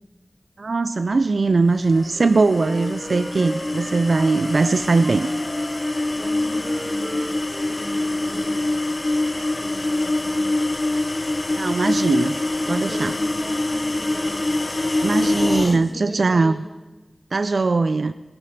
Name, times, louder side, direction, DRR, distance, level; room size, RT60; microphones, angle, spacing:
voice 1, 0.6-5.3 11.5-12.4 12.7-13.1 15.0-16.5 17.3-18.1, right 3 dB, 80° right, 12 dB, 0.4 m, -20 dB
Wind instrument woodwind instrument, 1.7-4.7 5.0-8.3, right 1 dB, 40° right, 1.6 m, -37 dB
sound 1, 1.9-15.8, left 2 dB, 40° left, 1.0 m, -24 dB
voice 2, 3.3-3.9 6.0-7.3 7.7-8.6 9.1-10.5 12.6-14.5 15.2-16.6, equal, 25° right, -2 dB, 5.9 m, -39 dB
21.0 x 10.5 x 5.8 m, 1.2 s
wide cardioid pair, 70°, 0 cm